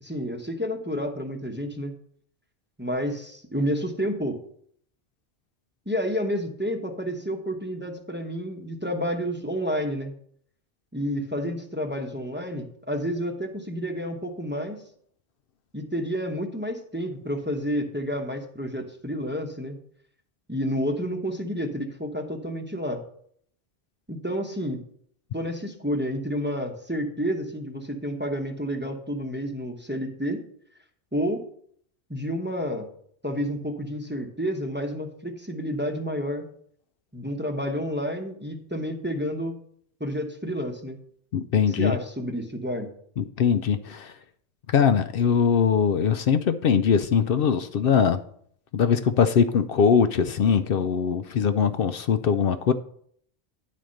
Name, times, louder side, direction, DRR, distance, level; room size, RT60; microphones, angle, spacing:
voice 1, 0.0-1.9 2.8-4.4 5.9-10.1 10.9-14.8 15.7-19.8 20.5-23.0 24.1-24.8 25.3-30.4 31.1-31.4 32.1-32.9 33.2-36.4 37.1-39.6 40.0-41.0 41.7-42.9, equal, 10° right, 3 dB, 0.9 m, -30 dB
voice 2, 41.3-42.0 43.2-44.1 44.7-48.2 48.7-52.7, left 7 dB, 65° left, 10 dB, 0.7 m, -21 dB
10.5 x 4.2 x 6.4 m, 0.63 s
omnidirectional pair, 1.0 m